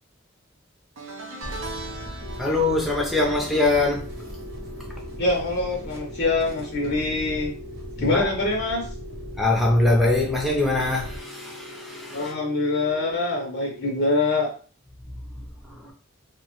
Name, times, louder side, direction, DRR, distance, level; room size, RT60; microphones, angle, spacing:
sound 1, 1.0-6.4 6.6-7.0 8.2-8.3, right 2 dB, 80° right, 0.6 m, -41 dB
sound 2, 1.4-11.2, equal, 50° right, 0.8 m, -39 dB
sound 3, 2.2-14.0, left 1 dB, 90° left, 0.6 m, -42 dB
voice 1, 2.4-4.1 8.0-8.3 9.4-12.3 15.4-15.9, left 2 dB, ahead, 0.5 m, -23 dB
voice 2, 5.2-7.6 8.0-8.9 12.1-14.5, left 2 dB, 50° left, 0.5 m, -24 dB
2.8 x 2.1 x 2.9 m
head